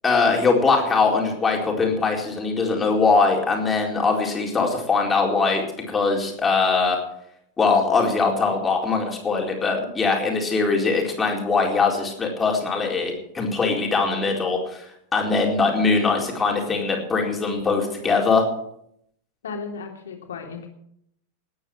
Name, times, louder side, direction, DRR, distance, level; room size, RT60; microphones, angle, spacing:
voice 1, 0.0-7.0 7.6-18.5, left 4 dB, 15° left, 0 dB, 4.3 m, -21 dB
voice 2, 19.4-20.7, left 5 dB, 65° left, 2 dB, 3.3 m, -35 dB
19.0 x 9.6 x 6.2 m, 0.73 s
figure-of-eight pair, 90°, 0 cm